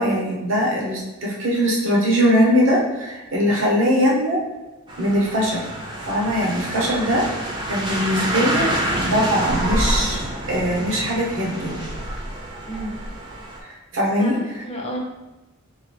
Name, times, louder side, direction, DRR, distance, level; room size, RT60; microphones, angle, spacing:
voice 1, 0.0-4.4 5.0-5.7 6.1-7.3 7.7-8.7 9.0-10.2 10.5-11.7 13.6-14.4, equal, 70° right, -3 dB, 1.1 m, -21 dB
sound 1, 4.9-13.6, right 1 dB, 25° right, 0.7 m, -27 dB
voice 2, 12.6-13.0 14.2-15.0, equal, 30° left, -1 dB, 0.8 m, -31 dB
3.8 x 3.5 x 3.4 m, 1.1 s
head